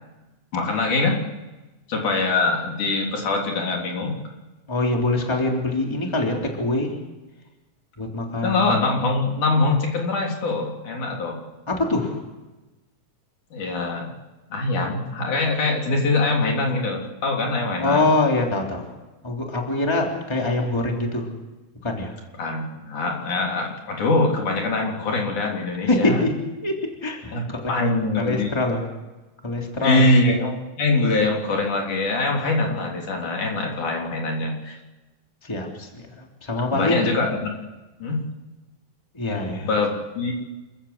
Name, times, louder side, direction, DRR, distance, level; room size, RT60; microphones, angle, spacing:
voice 1, 0.5-1.2 1.9-4.1 8.4-11.4 13.5-14.1 14.5-18.1 22.4-26.2 27.3-28.5 29.8-34.8 36.7-37.5 38.0-38.2 39.6-40.3, left 2 dB, 70° left, 0 dB, 5.0 m, -23 dB
voice 2, 4.7-7.0 8.0-8.7 11.7-12.2 17.8-18.9 19.2-21.3 21.8-22.1 25.8-26.4 26.6-26.8 27.0-27.7 28.2-28.8 29.4-30.1 35.4-37.2 39.1-39.7, left 2 dB, 10° left, 0 dB, 3.2 m, -24 dB
28.0 x 15.0 x 8.1 m, 1.1 s
omnidirectional pair, 3.7 m